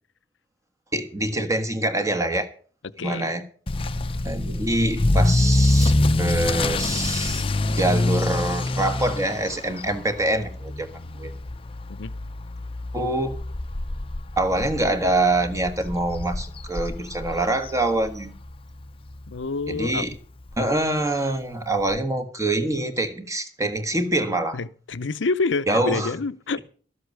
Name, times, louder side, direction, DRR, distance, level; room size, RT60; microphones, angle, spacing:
voice 1, 0.9-2.5 3.0-3.4 4.2-7.5 7.8-10.9 11.1-11.3 12.9-13.4 14.4-18.3 19.7-20.2 20.6-24.6 25.7-26.1, right 1 dB, 15° right, 1.4 m, -25 dB
voice 2, 3.0-3.3 11.9-12.2 19.3-20.1 24.5-26.6, left 3 dB, 90° left, 0.7 m, -28 dB
Motor vehicle (road) / Accelerating revving vroom, 3.7-18.5 18.8-19.2 19.7-19.8 20.1-20.2 20.5-20.6 21.9-22.0, left 2 dB, 30° left, 0.6 m, -25 dB
13.0 x 8.1 x 6.5 m
head